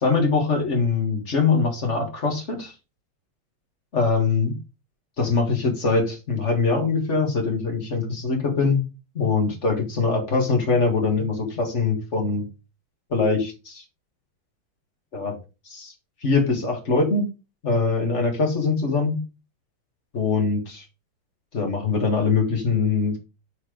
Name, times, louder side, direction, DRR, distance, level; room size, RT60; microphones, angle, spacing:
voice 1, 0.0-2.7 3.9-4.6 5.2-8.8 9.2-12.5 13.1-13.8 15.1-15.4 15.7-15.9 16.2-17.3 17.6-19.2 20.1-20.9 21.5-23.2, left 4 dB, 40° left, 4 dB, 1.9 m, -23 dB
6.7 x 4.2 x 4.9 m, 0.29 s
omnidirectional pair, 2.1 m